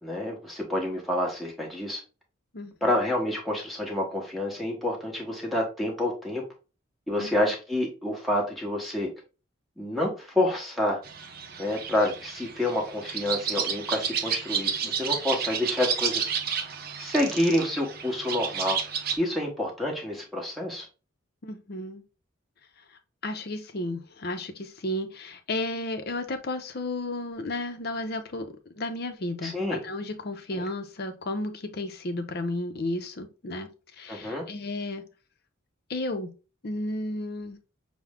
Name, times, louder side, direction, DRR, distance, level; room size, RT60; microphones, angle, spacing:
voice 1, 0.0-2.0 2.8-6.4 7.1-9.1 9.8-11.0 11.6-16.3 17.0-18.8 19.1-20.9 29.4-29.8 30.5-30.6 34.1-34.5, left 1 dB, ahead, -1 dB, 1.0 m, -28 dB
sound 1, 11.0-19.2, right 7 dB, 45° right, 0.6 m, -31 dB
voice 2, 21.4-22.0 23.2-35.0 35.9-36.3 36.6-37.6, left 2 dB, 50° left, 8 dB, 0.6 m, -33 dB
6.1 x 2.1 x 3.5 m, 0.33 s
head